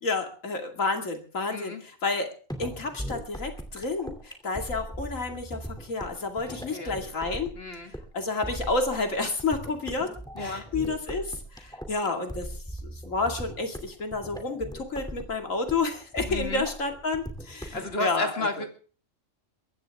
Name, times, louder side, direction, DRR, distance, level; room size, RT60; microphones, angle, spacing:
voice 1, 0.0-2.3 2.6-7.5 8.1-10.1 10.4-11.3 11.5-12.5 12.8-18.5, left 3 dB, 90° left, 4 dB, 2.8 m, -30 dB
voice 2, 1.5-1.8 6.5-6.9 7.6-7.9 10.3-10.6 16.3-16.6 17.6-18.7, left 2 dB, 50° left, 4 dB, 2.5 m, -32 dB
sound 1, 2.5-17.9, right 1 dB, 5° left, 2.6 m, -39 dB
22.0 x 15.5 x 3.5 m, 0.41 s
omnidirectional pair, 1.3 m